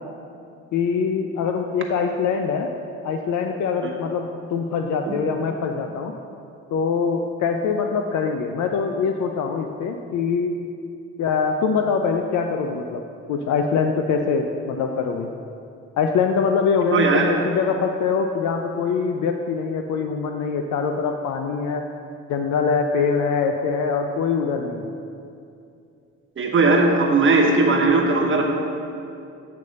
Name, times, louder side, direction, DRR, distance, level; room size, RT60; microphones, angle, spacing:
voice 1, 0.7-2.7 3.0-6.1 6.7-10.5 11.2-13.0 13.3-15.3 16.0-21.8 22.3-24.9, left 5 dB, 70° left, 4 dB, 0.5 m, -23 dB
voice 2, 16.9-17.3 26.4-28.4, right 3 dB, 40° right, 0 dB, 1.1 m, -18 dB
8.2 x 3.4 x 6.5 m, 2.5 s
cardioid pair, 90°, 30 cm